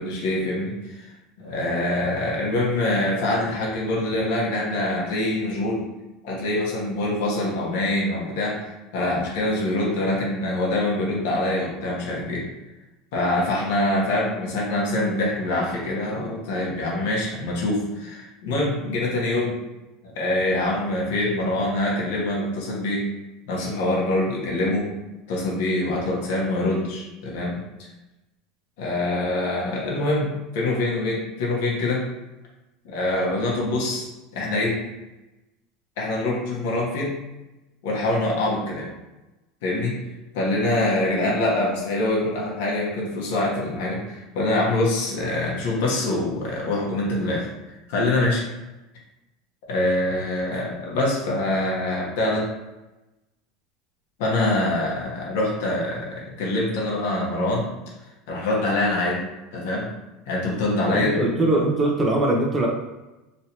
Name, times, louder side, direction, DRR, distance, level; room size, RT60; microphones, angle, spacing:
voice 1, 0.0-5.8 6.2-12.4 13.1-19.6 20.0-23.1 23.5-24.9 25.3-27.9 28.8-32.0 32.9-34.1 34.3-34.8 36.0-37.1 37.8-38.9 39.6-39.9 40.3-47.5 47.9-48.4 49.7-52.5 54.2-57.6 58.3-59.2 59.5-59.9 60.3-61.1, left 2 dB, 75° left, -4 dB, 1.1 m, -24 dB
voice 2, 60.9-62.7, right 1 dB, 15° right, -1 dB, 0.7 m, -21 dB
3.2 x 2.7 x 2.9 m, 1.0 s
supercardioid pair, 155°, 0 cm